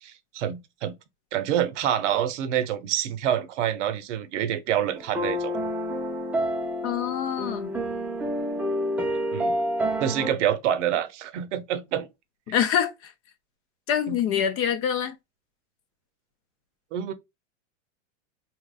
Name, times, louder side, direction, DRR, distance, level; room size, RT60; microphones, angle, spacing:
voice 1, 0.0-0.9 1.3-5.6 9.3-9.5 10.0-12.1 14.1-14.2 16.9-17.1, right 10 dB, 65° right, 0.8 m, -27 dB
sound 1, 5.0-10.3, equal, 5° right, 0.3 m, -28 dB
voice 2, 6.8-7.7 12.5-13.1 13.9-15.1, left 9 dB, 35° left, 0.7 m, -25 dB
3.6 x 3.0 x 2.4 m
hypercardioid pair, 120°, 39 cm